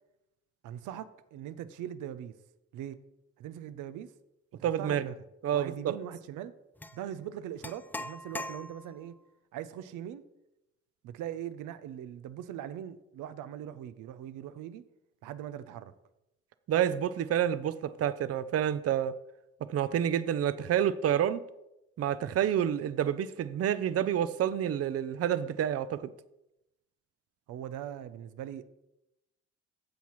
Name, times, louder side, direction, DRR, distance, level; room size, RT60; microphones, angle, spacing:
voice 1, 0.6-2.4 2.7-3.0 3.4-4.1 4.5-5.2 5.5-6.5 6.9-9.2 9.5-10.2 11.0-14.8 15.2-15.9 27.5-28.6, right 10 dB, 90° right, 0.7 m, -41 dB
voice 2, 4.6-5.0 5.4-6.0 16.7-19.1 19.7-21.4 22.0-26.0, right 10 dB, 50° right, 0.6 m, -28 dB
sound 1, 6.8-7.0 7.6-9.1, left 1 dB, 5° left, 0.4 m, -41 dB
15.5 x 5.8 x 3.1 m
cardioid pair, 90°, 30 cm